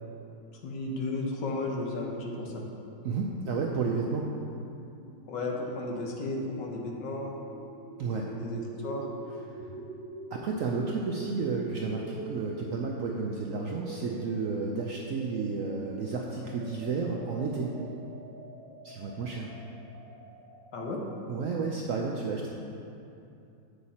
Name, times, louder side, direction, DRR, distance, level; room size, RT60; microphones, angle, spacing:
voice 1, 0.6-2.6 5.3-7.4 8.0-9.1 20.7-21.0, left 2 dB, 75° left, -1 dB, 1.6 m, -34 dB
sound 1, 2.6-20.9, right 2 dB, 45° right, 0.8 m, -46 dB
voice 2, 3.0-4.3 8.0-8.3 9.5-9.6 10.3-17.8 18.8-19.5 21.3-22.5, right 4 dB, 75° right, 0 dB, 0.7 m, -32 dB
8.0 x 6.5 x 4.2 m, 2.7 s
omnidirectional pair, 1.9 m